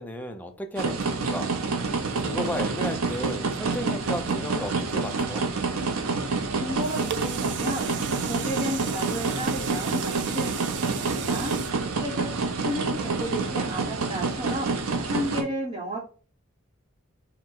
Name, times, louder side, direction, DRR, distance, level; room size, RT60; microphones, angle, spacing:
voice 1, 0.0-1.6 2.2-5.5, left 1 dB, 10° left, 5 dB, 0.5 m, -34 dB
sound 1, 0.8-15.4, right 4 dB, 85° right, 0.7 m, -28 dB
voice 2, 6.5-7.9 8.3-10.6 10.8-11.5 11.9-16.0, equal, 25° right, -5 dB, 0.9 m, -33 dB
sound 2, 6.5-12.8 13.3-13.4, right 9 dB, 55° right, 0.3 m, -37 dB
4.3 x 2.1 x 3.7 m, 0.38 s
head